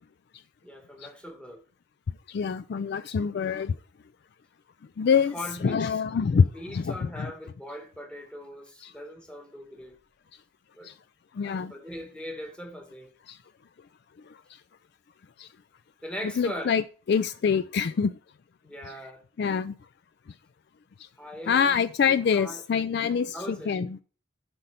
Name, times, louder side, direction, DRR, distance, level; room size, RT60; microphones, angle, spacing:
voice 1, 0.6-1.6 5.3-6.0 6.3-10.0 10.8-10.9 11.4-13.1 16.0-16.8 18.6-19.2 21.2-22.6 23.3-23.7, equal, 5° left, 1.3 m, -40 dB
voice 2, 2.3-3.8 5.0-5.3 5.6-7.3 8.8-8.9 10.8-10.9 11.3-11.7 13.3-13.4 14.3-14.4 15.4-15.5 16.4-16.8 17.1-18.1 19.4-19.7 21.0-21.1 21.5-24.0, left 6 dB, 55° left, 0.3 m, -25 dB
7.8 x 4.3 x 6.7 m
head